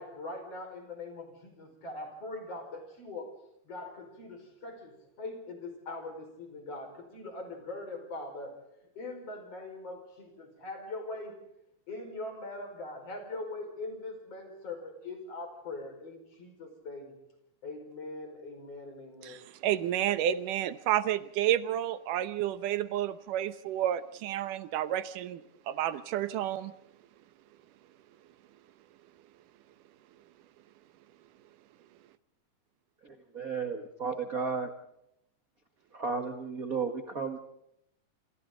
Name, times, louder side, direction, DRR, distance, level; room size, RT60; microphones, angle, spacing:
voice 1, 0.0-3.3 3.6-8.5 8.9-11.4 11.9-17.1 17.6-19.4, left 2 dB, 50° left, 5 dB, 6.1 m, -42 dB
voice 2, 19.2-25.4 25.7-26.7, right 11 dB, 85° right, 13 dB, 2.6 m, -30 dB
voice 3, 33.0-34.7 35.9-37.4, right 5 dB, 40° right, 6 dB, 1.4 m, -34 dB
27.5 x 27.0 x 3.9 m, 0.81 s
omnidirectional pair, 3.6 m